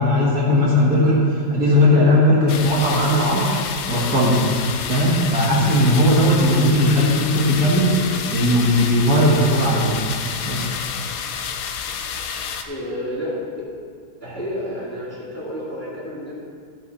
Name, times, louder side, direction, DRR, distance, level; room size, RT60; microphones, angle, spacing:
voice 1, 0.0-3.6 3.9-4.5 4.9-7.9 8.3-10.0 10.5-10.7, left 1 dB, 50° right, -5 dB, 2.0 m, -17 dB
sound 1, 2.5-12.6, left 7 dB, 70° left, 0.8 m, -29 dB
voice 2, 12.7-13.6 14.2-16.3, left 1 dB, 10° left, -8 dB, 2.1 m, -30 dB
13.0 x 6.6 x 4.2 m, 2.1 s
omnidirectional pair, 2.2 m